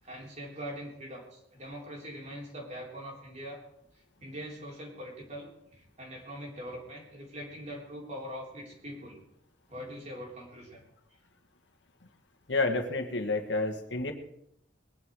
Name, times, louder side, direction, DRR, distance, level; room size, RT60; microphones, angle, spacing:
voice 1, 0.0-3.6 4.2-9.2 9.7-10.8, equal, 35° right, -2 dB, 3.9 m, -42 dB
voice 2, 12.5-14.1, left 3 dB, 70° left, 6 dB, 1.8 m, -29 dB
21.0 x 10.5 x 4.8 m, 0.78 s
head